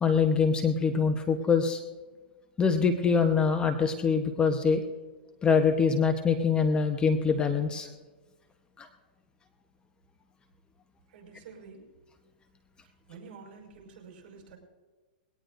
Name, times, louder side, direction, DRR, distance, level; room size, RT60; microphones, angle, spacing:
voice 1, 0.0-1.8 2.6-4.8 5.4-7.9 8.8-8.9, left 5 dB, 15° left, 6 dB, 1.0 m, -24 dB
voice 2, 11.1-11.8 13.1-14.6, right 5 dB, 50° right, 1 dB, 5.4 m, -48 dB
21.0 x 18.0 x 2.6 m, 1.3 s
hypercardioid pair, 130°, 6 cm